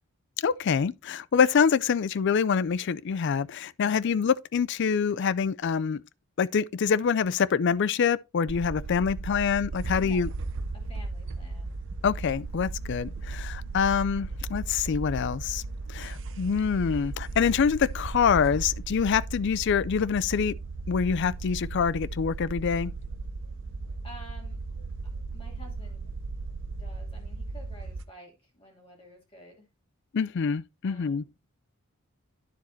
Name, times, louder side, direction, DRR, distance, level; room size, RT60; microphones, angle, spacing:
voice 1, 0.4-6.0 6.4-10.3 12.0-15.6 15.9-20.5 20.9-22.9 30.1-31.2, left 6 dB, 55° left, 0.4 m, -25 dB
sound 1, 8.5-28.0, right 3 dB, 55° right, 0.7 m, -36 dB
voice 2, 9.9-10.2 10.7-11.8 24.0-24.6 25.0-26.1 26.7-29.7 30.8-31.3, equal, 25° left, 2.8 m, -51 dB
10.0 x 7.3 x 2.7 m
head